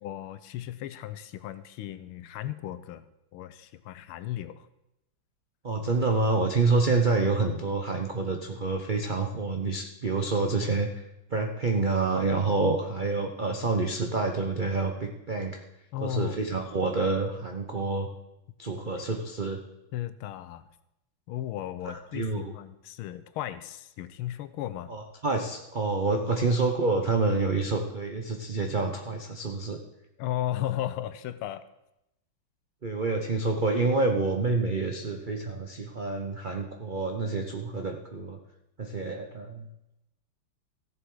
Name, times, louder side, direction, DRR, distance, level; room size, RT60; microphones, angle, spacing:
voice 1, 0.0-3.0 3.3-4.7 15.9-16.4 19.9-20.7 21.3-24.9 30.2-31.7, left 12 dB, 90° left, 13 dB, 1.5 m, -35 dB
voice 2, 5.6-11.0 11.3-15.6 16.0-18.1 18.6-19.6 21.8-22.5 24.9-29.8 32.8-38.4 38.8-39.7, right 3 dB, 70° right, 3 dB, 0.4 m, -28 dB
15.0 x 7.1 x 4.8 m, 0.86 s
omnidirectional pair, 2.3 m